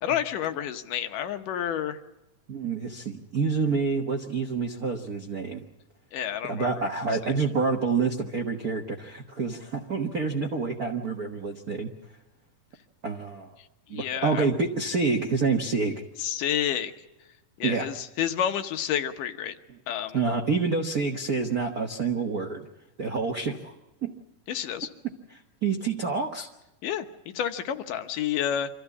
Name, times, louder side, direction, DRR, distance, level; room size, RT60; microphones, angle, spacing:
voice 1, 0.0-2.0 6.1-6.7 7.2-7.3 13.9-14.5 16.2-16.9 17.6-19.6 19.9-20.2 24.5-24.9 26.8-27.1 27.3-28.7, left 10 dB, 80° left, 7 dB, 2.7 m, -29 dB
voice 2, 2.5-5.6 6.4-11.9 13.0-13.5 13.9-16.0 17.6-17.9 20.1-22.7 23.0-23.7 24.0-24.2 25.0-26.5, right 4 dB, 65° right, 3 dB, 0.9 m, -28 dB
26.0 x 15.0 x 8.4 m, 0.99 s
omnidirectional pair, 3.8 m